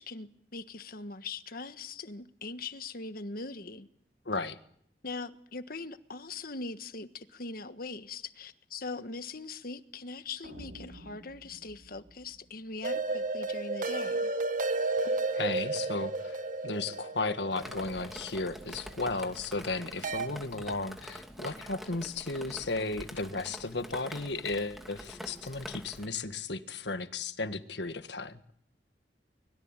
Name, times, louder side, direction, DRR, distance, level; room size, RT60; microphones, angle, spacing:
voice 1, 0.0-3.9 5.0-14.3, left 3 dB, 55° left, 1.5 m, -41 dB
voice 2, 4.3-4.6 15.3-28.4, left 3 dB, 75° left, 1.7 m, -34 dB
sound 1, 10.4-13.5, right 1 dB, 75° right, 3.2 m, -51 dB
sound 2, 12.8-18.9 20.0-20.3, right 3 dB, 50° right, 1.5 m, -32 dB
Drip, 17.6-26.1, equal, ahead, 2.6 m, -46 dB
24.0 x 22.0 x 9.0 m
head